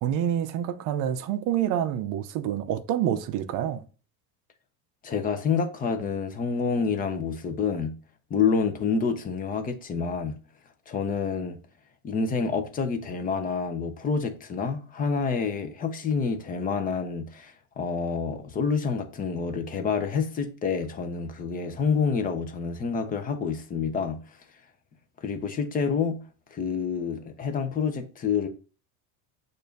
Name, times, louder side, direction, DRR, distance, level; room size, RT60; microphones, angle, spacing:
voice 1, 0.0-3.8, right 10 dB, 50° right, 0.7 m, -27 dB
voice 2, 5.0-7.9 8.3-10.4 10.9-11.6 12.0-24.2 25.2-26.2 26.5-28.5, left 5 dB, 20° left, 0.6 m, -28 dB
6.9 x 2.6 x 5.1 m
cardioid pair, 160°, 40 cm